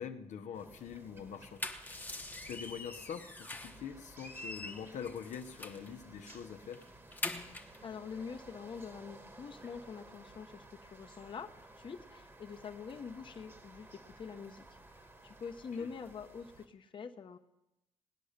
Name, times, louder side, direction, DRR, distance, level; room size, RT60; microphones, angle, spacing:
voice 1, 0.0-1.6 2.4-6.9 15.8-15.9, left 7 dB, 80° left, 6 dB, 0.9 m, -44 dB
sound 1, 0.5-16.7, right 2 dB, 20° right, 1.3 m, -56 dB
sound 2, 1.3-3.8 4.2-5.9 6.3-6.4 6.7-7.8, left 2 dB, 15° left, 1.0 m, -43 dB
voice 2, 7.4-14.6 15.0-17.4, left 6 dB, 40° left, 5 dB, 1.0 m, -45 dB
18.5 x 10.0 x 6.6 m, 0.94 s
cardioid pair, 135°, 12 cm